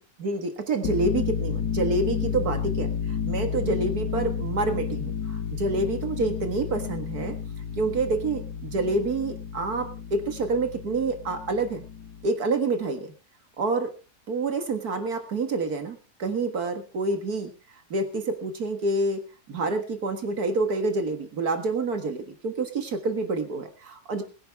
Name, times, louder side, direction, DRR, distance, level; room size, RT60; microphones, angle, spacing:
voice 1, 0.2-2.9 3.3-7.4 7.8-11.8 12.2-13.1 13.6-13.9 14.3-19.2 19.5-24.2, right 3 dB, 65° right, 7 dB, 2.1 m, -27 dB
sound 1, 0.7-12.3, left 7 dB, 90° left, 2.3 m, -31 dB
21.5 x 10.5 x 3.4 m, 0.32 s
omnidirectional pair, 1.8 m